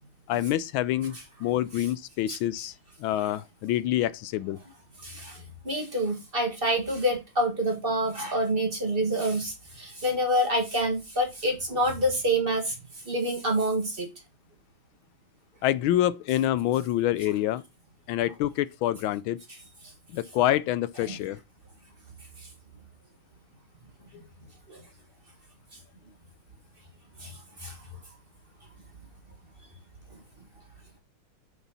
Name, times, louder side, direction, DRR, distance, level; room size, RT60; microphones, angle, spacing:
voice 1, 0.3-2.7 3.0-4.6 15.6-17.6 18.1-19.4 20.1-21.4, left 13 dB, 80° left, 1.4 m, -26 dB
voice 2, 5.0-12.8 13.1-14.1 21.1-21.2 24.7-24.8 27.2-27.3 27.6-27.8, right 1 dB, 30° right, 1.8 m, -27 dB
7.0 x 6.4 x 4.1 m
omnidirectional pair, 2.2 m